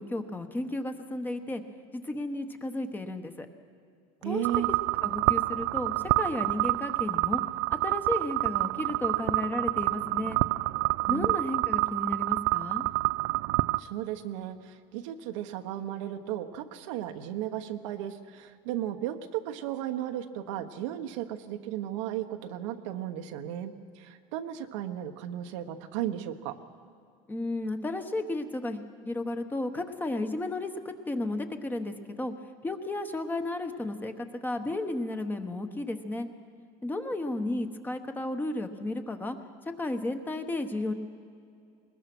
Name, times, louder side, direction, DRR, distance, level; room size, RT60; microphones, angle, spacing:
voice 1, 0.0-1.6 1.9-3.5 4.2-4.5 5.0-7.4 7.7-10.4 11.1-12.8 27.3-32.3 32.6-36.3 36.8-39.4 39.8-40.9, left 2 dB, 10° left, 7 dB, 1.1 m, -33 dB
voice 2, 4.2-4.7 11.1-11.3 13.8-26.5, right 12 dB, 90° right, 6 dB, 1.3 m, -35 dB
sound 1, 4.4-13.8, right 23 dB, 70° right, 0.4 m, -28 dB
20.5 x 20.5 x 6.1 m, 2.4 s
cardioid pair, 145°, 15 cm